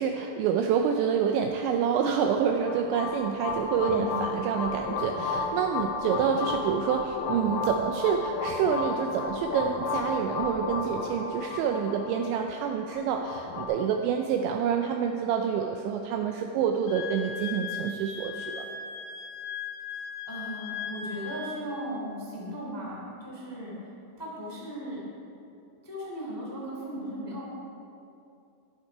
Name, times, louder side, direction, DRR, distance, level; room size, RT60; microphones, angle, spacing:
voice 1, 0.0-18.7, right 7 dB, 85° right, 4 dB, 2.6 m, -27 dB
sound 1, 2.3-13.7, left 4 dB, 90° left, 3.8 m, -33 dB
voice 2, 3.8-4.3 20.3-23.9 24.2-25.0 25.8-27.5, equal, 10° left, -5 dB, 0.8 m, -37 dB
Wind instrument woodwind instrument, 16.9-21.6, left 6 dB, 65° left, 2.4 m, -38 dB
12.5 x 11.5 x 4.6 m, 2.7 s
omnidirectional pair, 5.8 m